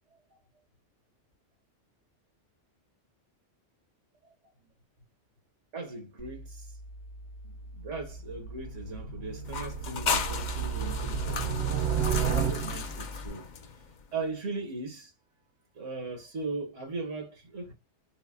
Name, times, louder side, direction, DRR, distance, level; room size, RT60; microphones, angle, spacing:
voice 1, 5.7-6.7 7.4-11.6 12.0-13.5 14.1-15.1 15.7-17.7, right 3 dB, 90° right, 1.7 m, -38 dB
sound 1, 6.2-13.3, left 2 dB, 80° left, 1.2 m, -44 dB
sound 2, 7.8-13.1, right 7 dB, 60° right, 0.9 m, -32 dB
sound 3, 9.5-14.0, left 5 dB, 50° left, 0.6 m, -35 dB
5.4 x 2.2 x 2.5 m
omnidirectional pair, 1.2 m